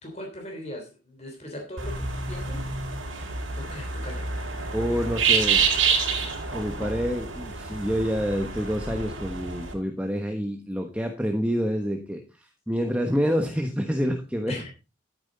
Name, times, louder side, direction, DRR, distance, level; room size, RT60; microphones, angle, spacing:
voice 1, 0.0-3.0 3.6-4.3 14.5-14.7, left 1 dB, 35° left, 1 dB, 3.3 m, -39 dB
sound 1, 1.8-9.7, right 5 dB, 85° right, 4.5 m, -28 dB
voice 2, 4.7-5.7 6.5-14.5, equal, 5° right, 4 dB, 1.2 m, -27 dB
13.5 x 9.0 x 4.0 m, 0.30 s
head